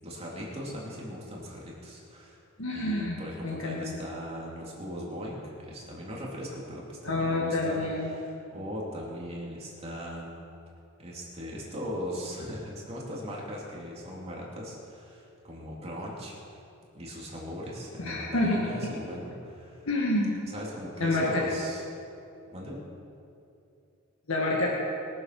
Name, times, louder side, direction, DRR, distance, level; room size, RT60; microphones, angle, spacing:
voice 1, 0.0-2.4 2.7-10.3 11.0-16.6 16.9-19.9 20.5-21.8 22.5-22.8, equal, 30° right, -4 dB, 3.0 m, -39 dB
voice 2, 2.6-3.2 3.4-3.9 7.0-8.1 18.0-18.7 19.9-20.4 21.0-21.3 24.3-24.7, left 2 dB, 65° left, -3 dB, 2.0 m, -28 dB
22.5 x 7.7 x 6.0 m, 2.7 s
head